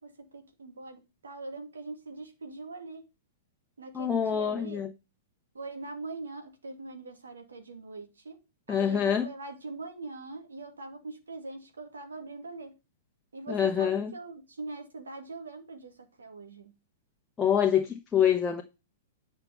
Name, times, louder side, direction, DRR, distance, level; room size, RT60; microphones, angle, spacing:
voice 1, 0.0-3.0 3.8-4.8 5.5-8.4 8.7-12.7 13.3-16.7, right 3 dB, 70° right, 2.7 m, -42 dB
voice 2, 3.9-4.9 8.7-9.2 13.5-14.1 17.4-18.6, left 8 dB, 15° left, 1.1 m, -26 dB
10.5 x 5.7 x 5.5 m
figure-of-eight pair, 105°, 0 cm